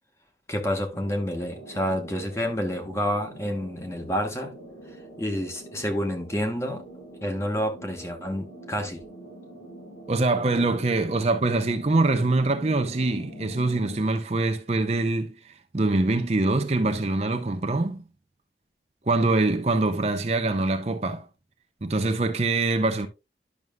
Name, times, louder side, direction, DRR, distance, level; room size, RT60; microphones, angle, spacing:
voice 1, 0.5-4.5 5.2-6.8 7.2-9.0, equal, 15° left, 1.0 m, -29 dB
sound 1, 0.9-14.0, right 1 dB, 85° left, 3.9 m, -45 dB
voice 2, 10.1-18.0 19.1-21.2 21.8-23.1, right 2 dB, 35° right, 0.6 m, -24 dB
11.0 x 6.2 x 2.2 m
head